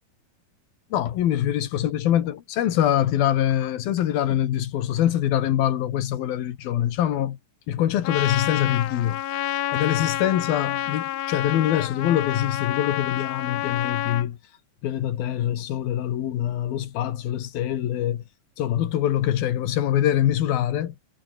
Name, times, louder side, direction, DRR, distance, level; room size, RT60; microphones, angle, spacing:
voice 1, 0.9-7.4 7.7-9.2 9.7-14.4 14.8-18.2 18.6-21.0, left 11 dB, 90° left, 3.6 m, -24 dB
Trumpet, 8.0-14.3, left 13 dB, 70° left, 1.6 m, -28 dB
omnidirectional pair, 4.1 m